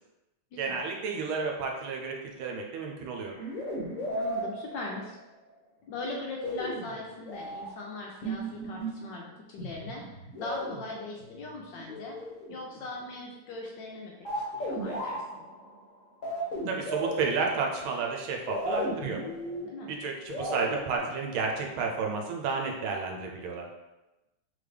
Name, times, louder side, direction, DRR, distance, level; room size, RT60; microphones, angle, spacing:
voice 1, 0.6-3.3 16.7-19.2 19.9-23.7, right 4 dB, 75° right, 1 dB, 1.5 m, -31 dB
sound 1, 3.3-5.3 6.4-7.7 8.2-9.1 9.6-12.8 14.3-17.9 18.5-21.0, right 1 dB, 45° left, 1.2 m, -35 dB
voice 2, 4.0-5.2 5.9-10.0 10.4-12.2 12.5-15.2 19.6-19.9, left 2 dB, 75° left, -1 dB, 1.1 m, -40 dB
3.9 x 3.3 x 3.3 m, 1.0 s
omnidirectional pair, 2.3 m